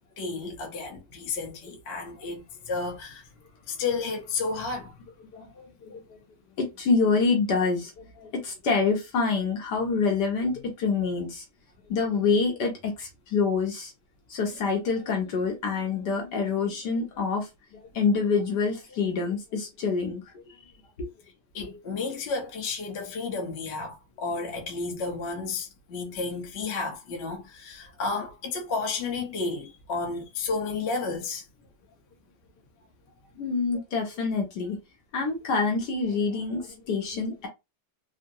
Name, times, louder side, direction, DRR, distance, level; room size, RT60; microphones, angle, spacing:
voice 1, 0.2-3.3 3.7-5.0 21.5-31.4, left 4 dB, 45° left, 0.9 m, -32 dB
voice 2, 5.3-6.2 6.6-11.4 11.9-13.9 14.3-20.7 21.0-21.1 24.4-24.5 33.4-34.8 35.1-37.5, left 4 dB, 65° left, 1.3 m, -27 dB
3.5 x 2.1 x 2.6 m
omnidirectional pair, 2.1 m